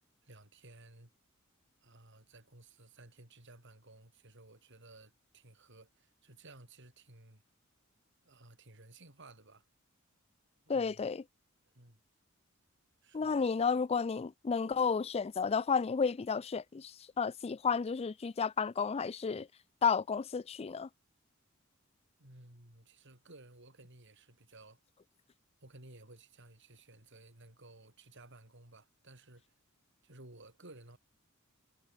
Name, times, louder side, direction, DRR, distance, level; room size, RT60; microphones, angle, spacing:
voice 1, 0.2-1.1 1.8-7.4 8.2-9.6 10.7-11.0 11.7-12.0 13.0-13.5 22.2-24.8 25.6-29.5 30.0-31.0, right 2 dB, 60° right, 6.4 m, -56 dB
voice 2, 10.7-11.2 13.1-19.5 19.8-20.9, left 5 dB, 30° left, 0.4 m, -32 dB
head